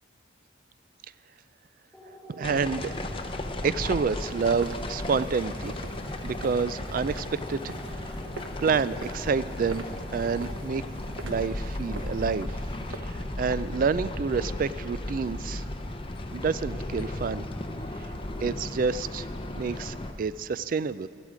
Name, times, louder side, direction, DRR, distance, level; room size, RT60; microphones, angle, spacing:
sound 1, 1.9-16.7, left 1 dB, 5° right, 1.9 m, -50 dB
voice 1, 2.3-3.0 3.6-5.7 6.2-7.7 8.1-8.2 8.6-9.8 10.1-10.9 11.2-12.6 12.9-15.7 16.3-17.4 18.0-18.1 18.4-19.3 19.6-21.1, right 5 dB, 45° right, 16 dB, 0.3 m, -28 dB
sound 2, 2.4-20.1, left 1 dB, 25° left, 0.6 m, -35 dB
sound 3, 4.2-13.0, right 2 dB, 80° right, 0.9 m, -44 dB
16.0 x 12.5 x 5.0 m, 2.3 s
head